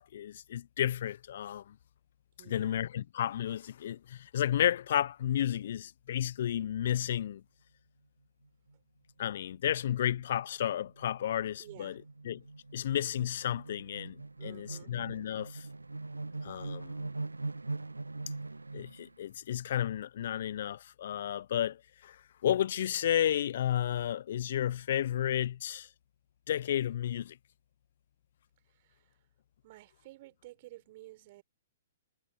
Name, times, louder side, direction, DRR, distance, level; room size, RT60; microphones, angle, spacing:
voice 1, 0.0-1.7 2.5-7.4 9.2-12.0 12.2-12.4 12.7-15.7 16.4-17.1 18.7-25.9 26.5-27.4, left 10 dB, 55° left, 0.8 m, -32 dB
voice 2, 2.4-2.8 11.6-12.0 14.4-14.9 28.7-29.1 29.6-31.4, right 18 dB, 45° right, 4.9 m, -53 dB
sound 1, 8.4-8.7 9.1-9.2 9.5-19.1, right 3 dB, 85° right, 0.3 m, -42 dB
figure-of-eight pair, 120°, 0 cm